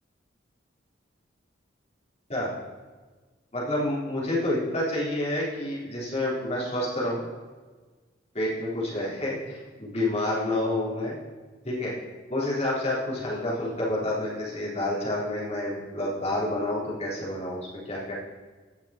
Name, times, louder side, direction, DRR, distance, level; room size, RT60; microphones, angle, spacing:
voice 1, 3.5-7.3 8.3-11.2 11.6-11.9 12.3-18.1, left 1 dB, 35° left, -7 dB, 3.8 m, -29 dB
17.5 x 6.0 x 4.4 m, 1.4 s
head